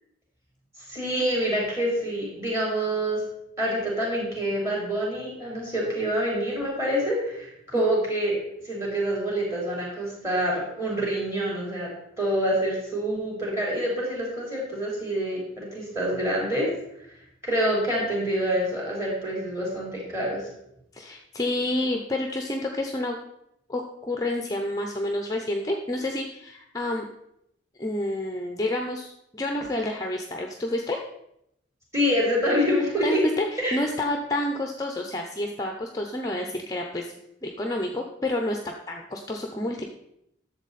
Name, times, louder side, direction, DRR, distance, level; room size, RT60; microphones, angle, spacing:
voice 1, 0.9-3.2 3.6-8.4 8.6-11.9 12.2-16.7 17.4-20.4 31.9-33.2 33.6-33.8, equal, 15° right, -3 dB, 3.7 m, -26 dB
voice 2, 20.9-23.2 23.7-27.0 27.8-31.0 33.0-37.1 37.4-38.6 38.9-39.8, left 1 dB, 20° left, 2 dB, 0.7 m, -29 dB
11.5 x 7.2 x 4.1 m, 0.79 s
head